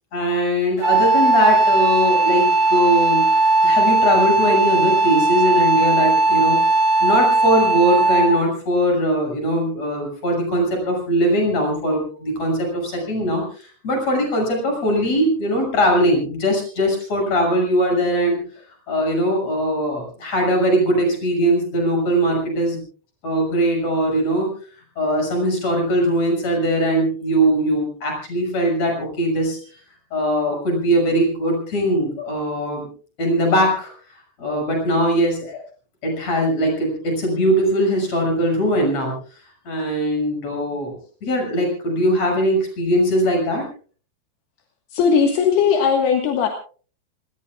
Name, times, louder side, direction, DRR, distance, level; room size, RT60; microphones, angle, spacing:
voice 1, 0.1-3.3 3.6-6.6 7.0-18.4 18.9-22.8 23.2-24.5 25.0-29.6 30.1-32.9 33.2-33.9 34.4-35.6 36.0-39.1 39.7-43.6, equal, 40° left, 2 dB, 7.6 m, -20 dB
Wind instrument woodwind instrument, 0.8-8.4, right 2 dB, 90° right, 7.2 m, -17 dB
voice 2, 44.9-46.5, left 6 dB, 75° left, 3 dB, 3.6 m, -18 dB
29.5 x 18.5 x 2.4 m, 0.40 s
omnidirectional pair, 4.8 m